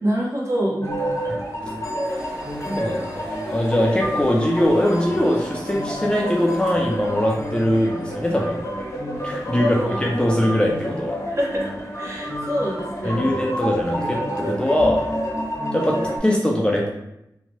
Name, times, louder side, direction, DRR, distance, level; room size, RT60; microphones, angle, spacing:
voice 1, 0.0-0.9 9.6-10.0 11.3-13.3, equal, 40° right, -4 dB, 0.8 m, -25 dB
sound 1, 0.8-16.2, equal, 40° left, 0.7 m, -29 dB
sound 2, 2.1-7.6, right 1 dB, 15° right, 1.3 m, -40 dB
voice 2, 2.7-8.6 9.2-11.2 13.0-15.0 15.7-16.9, left 1 dB, 15° left, -1 dB, 0.4 m, -21 dB
2.8 x 2.2 x 3.0 m, 0.85 s
wide cardioid pair, 90°, 7 cm